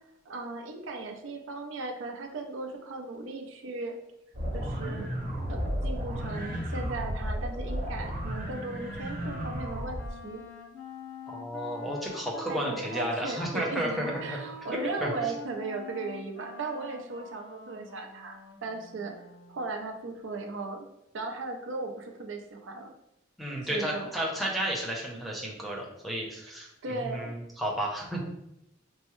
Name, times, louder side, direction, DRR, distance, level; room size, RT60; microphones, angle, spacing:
voice 1, 0.3-4.0 4.5-5.1 5.5-10.4 12.5-19.1 19.5-20.9 21.1-22.9 23.7-24.1 26.8-27.4, right 3 dB, 75° right, 3 dB, 0.5 m, -37 dB
sound 1, 4.3-10.1, equal, 45° right, 0.9 m, -33 dB
Wind instrument woodwind instrument, 7.6-19.7, left 3 dB, 70° left, 0.6 m, -45 dB
voice 2, 11.3-14.4 14.7-15.1 23.4-28.2, right 1 dB, ahead, -2 dB, 0.6 m, -32 dB
4.5 x 2.1 x 3.0 m, 0.84 s
head